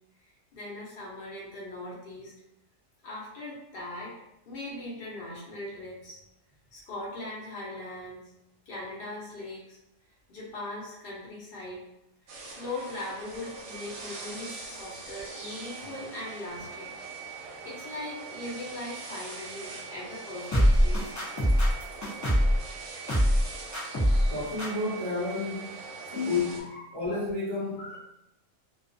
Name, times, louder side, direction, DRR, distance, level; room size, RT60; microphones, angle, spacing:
voice 1, 0.5-2.3 3.0-4.2 4.5-6.2 6.7-8.2 8.7-9.8 10.3-11.8 12.4-16.9 17.3-21.2 22.9-23.0 23.4-23.5 23.8-24.2 26.1-27.3 27.8-28.0, left 1 dB, 50° left, -5 dB, 0.9 m, -40 dB
sound 1, 12.3-26.6, right 4 dB, 65° right, 0.8 m, -42 dB
sound 2, 20.5-22.6 23.1-23.5 23.7-24.3 24.6-24.7, equal, 25° left, 0.3 m, -22 dB
voice 2, 24.3-25.8 26.1-28.0, left 3 dB, 35° right, -6 dB, 0.4 m, -31 dB
2.3 x 2.3 x 2.5 m, 0.84 s
omnidirectional pair, 1.4 m